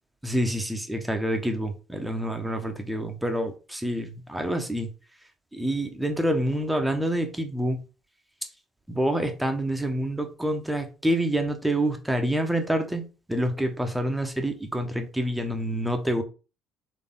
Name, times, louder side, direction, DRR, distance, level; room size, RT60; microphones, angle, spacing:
voice 1, 0.2-4.9 5.5-7.8 8.9-16.2, right 1 dB, 5° right, 1.1 m, -27 dB
4.2 x 3.0 x 3.8 m
figure-of-eight pair, 55°, 0 cm